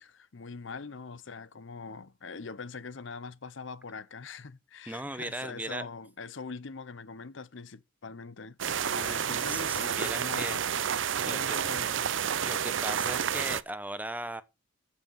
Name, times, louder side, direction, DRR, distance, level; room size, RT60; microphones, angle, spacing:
voice 1, 0.0-8.6 8.9-10.8 11.2-12.2, left 4 dB, 60° left, 0.7 m, -42 dB
voice 2, 4.9-5.9 9.5-10.9 11.2-11.6 12.4-14.4, right 1 dB, 10° right, 0.8 m, -37 dB
sound 1, 8.6-13.6, right 8 dB, 65° right, 0.6 m, -30 dB
14.5 x 5.8 x 5.6 m
head